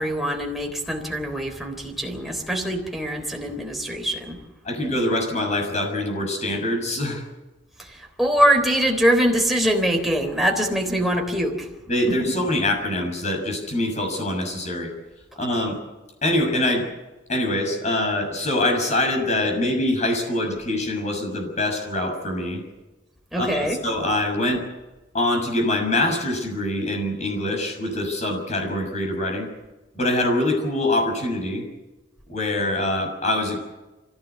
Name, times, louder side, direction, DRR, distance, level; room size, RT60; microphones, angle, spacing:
voice 1, 0.0-4.4 7.8-11.7 12.1-12.3 23.3-23.8, right 1 dB, ahead, 2 dB, 3.6 m, -23 dB
voice 2, 4.6-7.2 11.9-14.9 15.4-15.8 16.2-16.9 17.3-22.6 23.4-24.6 25.1-29.5 29.9-31.6 32.3-33.6, left 1 dB, 40° left, 5 dB, 6.4 m, -24 dB
25.0 x 16.0 x 8.2 m, 1.1 s
head